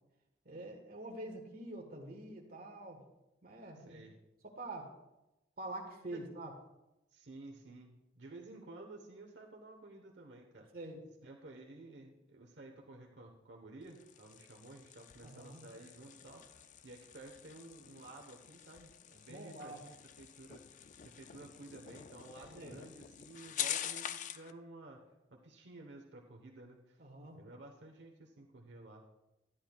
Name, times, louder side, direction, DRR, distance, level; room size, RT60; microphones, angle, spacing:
voice 1, 0.4-3.0 3.4-4.0 4.4-5.0 5.6-6.5 10.7-11.0 15.2-15.6 19.3-19.8 22.5-22.8 27.0-27.4, right 2 dB, 50° right, 0 dB, 1.5 m, -46 dB
voice 2, 3.9-4.2 6.1-6.2 7.1-10.7 11.2-25.0 25.3-27.0 27.3-29.0, right 2 dB, 85° right, 0 dB, 1.2 m, -53 dB
sound 1, 13.8-24.5, left 10 dB, 45° left, 0.3 m, -46 dB
12.5 x 10.5 x 2.4 m, 0.94 s
head